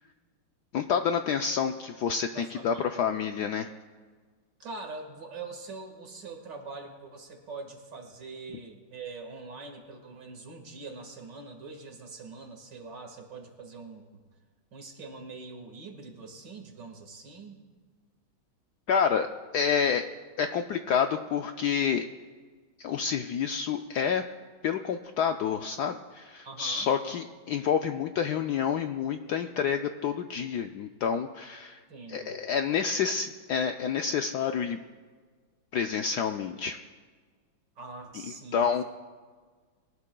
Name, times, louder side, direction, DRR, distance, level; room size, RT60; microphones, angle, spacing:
voice 1, 0.7-3.7 18.9-19.3 19.5-20.0 20.4-22.0 22.8-24.2 24.6-31.8 32.1-34.8 35.7-36.8 38.5-38.8, left 7 dB, 75° left, 6 dB, 1.0 m, -28 dB
voice 2, 2.3-3.1 4.6-14.2 14.7-17.6 26.5-26.9 31.9-32.4 37.8-38.7, right 3 dB, 60° right, 3 dB, 2.4 m, -43 dB
22.5 x 18.0 x 2.3 m, 1.5 s
omnidirectional pair, 2.2 m